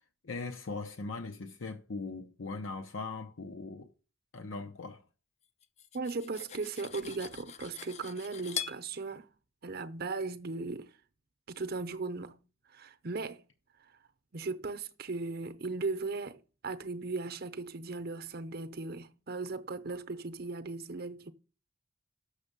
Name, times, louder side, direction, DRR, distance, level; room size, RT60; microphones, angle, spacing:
voice 1, 0.2-3.9 4.3-5.0, left 3 dB, 80° left, 0.8 m, -40 dB
Cutlery silverware, 5.6-8.8, left 9 dB, 35° left, 0.4 m, -42 dB
voice 2, 5.9-9.3 9.6-10.9 11.5-12.4 12.7-13.4 14.3-21.3, right 3 dB, 50° right, 0.7 m, -37 dB
6.6 x 6.3 x 6.7 m
head